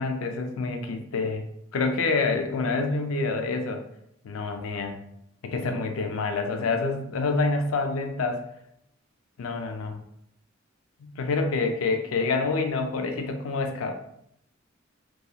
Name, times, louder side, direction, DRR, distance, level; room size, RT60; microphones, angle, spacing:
voice 1, 0.0-1.5 1.7-3.8 4.2-5.0 5.4-8.4 9.4-10.0 11.0-13.9, left 3 dB, 80° left, 5 dB, 0.4 m, -27 dB
2.7 x 2.3 x 2.3 m, 0.75 s
head